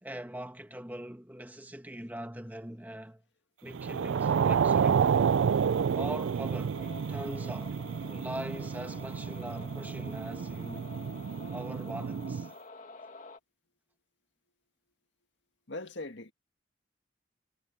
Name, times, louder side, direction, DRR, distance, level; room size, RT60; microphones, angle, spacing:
voice 1, 0.0-3.2 3.6-5.0 5.9-10.9 11.5-12.5, right 1 dB, 10° right, 1.6 m, -42 dB
sound 1, 3.7-12.5, right 7 dB, 85° right, 0.4 m, -30 dB
sound 2, 6.7-13.4, left 3 dB, 40° left, 2.1 m, -49 dB
voice 2, 15.7-16.3, left 2 dB, 70° left, 2.0 m, -40 dB
head